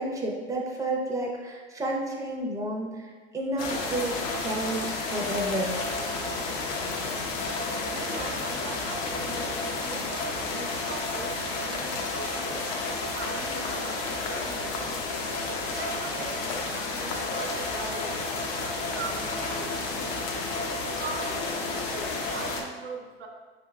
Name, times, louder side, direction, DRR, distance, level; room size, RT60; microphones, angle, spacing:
voice 1, 0.0-5.8, right 1 dB, 10° right, -1 dB, 0.7 m, -31 dB
sound 1, 3.6-22.6, left 3 dB, 45° left, 0.9 m, -31 dB
voice 2, 7.4-15.0 15.7-20.5 21.0-23.3, right 4 dB, 80° right, 0 dB, 0.9 m, -41 dB
5.7 x 3.4 x 2.4 m, 1.4 s
hypercardioid pair, 90°, 33 cm